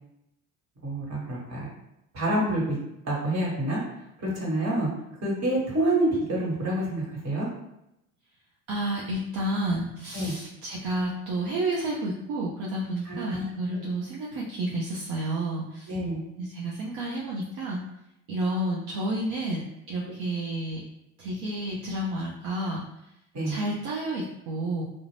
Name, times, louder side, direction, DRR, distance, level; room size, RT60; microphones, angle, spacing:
voice 1, 0.8-1.7 2.1-2.8 3.0-3.8 4.2-4.9 5.2-7.5 10.1-10.3 13.0-13.4 15.9-16.2 23.3-23.6, right 1 dB, 40° right, -4 dB, 1.3 m, -27 dB
voice 2, 8.7-15.9 16.4-17.8 18.3-20.8 21.2-22.8 23.4-24.8, right 1 dB, 65° right, -4 dB, 0.7 m, -30 dB
2.4 x 2.1 x 3.2 m, 0.84 s
hypercardioid pair, 70°, 40 cm